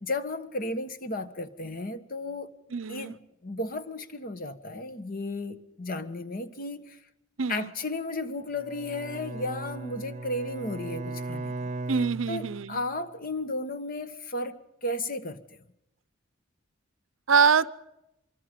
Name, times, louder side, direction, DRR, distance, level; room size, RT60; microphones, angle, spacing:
voice 1, 0.0-2.5 2.9-3.2 3.4-7.0 7.5-11.7 12.3-15.4, left 2 dB, 45° left, 11 dB, 1.4 m, -34 dB
voice 2, 2.7-3.2 7.4-7.7 11.9-12.8 17.3-17.7, right 6 dB, 85° right, 17 dB, 0.7 m, -24 dB
Bowed string instrument, 8.6-12.9, right 3 dB, 35° right, 0.9 m, -37 dB
24.5 x 23.5 x 5.2 m, 0.87 s
head